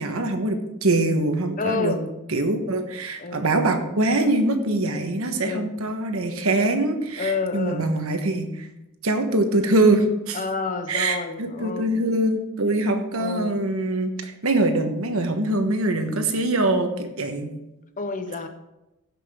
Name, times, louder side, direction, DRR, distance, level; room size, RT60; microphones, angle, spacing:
voice 1, 0.0-2.0 2.3-8.7 9.0-10.4 10.9-17.5, right 2 dB, 75° right, 6 dB, 1.2 m, -23 dB
voice 2, 1.6-2.0 3.2-3.5 5.4-5.7 7.2-7.9 10.3-12.0 13.1-13.6 18.0-18.5, left 4 dB, 40° left, 7 dB, 0.9 m, -29 dB
16.0 x 6.0 x 3.6 m, 0.95 s
head